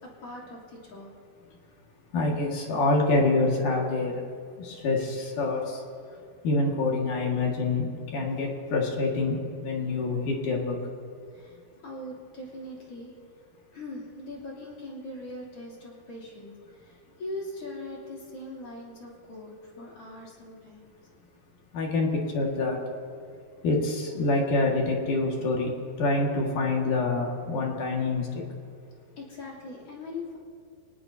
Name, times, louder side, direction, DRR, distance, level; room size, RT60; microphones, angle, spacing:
voice 1, 0.0-1.1 11.3-13.1 13.7-20.9 29.2-30.4, left 1 dB, 35° left, -3 dB, 3.7 m, -41 dB
voice 2, 2.1-4.2 4.6-5.6 6.4-9.4 9.6-10.8 21.7-22.8 23.6-25.7 26.0-28.4, left 3 dB, 55° left, -1 dB, 3.2 m, -26 dB
25.5 x 18.5 x 2.8 m, 2.3 s
omnidirectional pair, 4.8 m